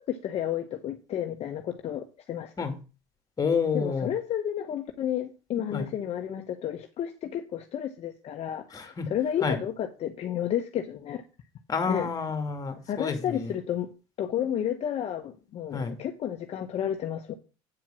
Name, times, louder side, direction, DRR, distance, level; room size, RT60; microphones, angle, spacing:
voice 1, 0.0-2.7 3.7-11.2 11.9-12.1 12.9-13.9 14.2-17.3, left 10 dB, 45° left, 1.0 m, -31 dB
voice 2, 3.4-4.1 5.7-5.9 8.7-9.1 9.4-9.6 11.7-13.2 15.7-16.0, left 5 dB, 25° left, 2.2 m, -28 dB
8.8 x 4.6 x 7.4 m
supercardioid pair, 100°, 14 cm